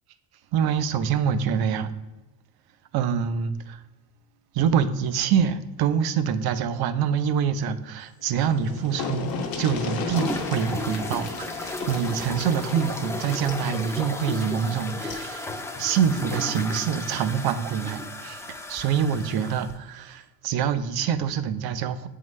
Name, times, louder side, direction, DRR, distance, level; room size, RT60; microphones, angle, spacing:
voice 1, 0.5-1.9 2.9-3.8 4.5-15.5 15.8-18.4 18.7-22.1, right 7 dB, 60° right, 0.6 m, -25 dB
sound 1, 8.2-8.3 8.5-15.3 16.6-16.7 17.1-17.2, left 5 dB, 55° left, 1.0 m, -35 dB
sound 2, 10.1-19.7, left 2 dB, 5° left, 0.5 m, -34 dB
7.7 x 3.8 x 3.2 m
cardioid pair, 105°, 43 cm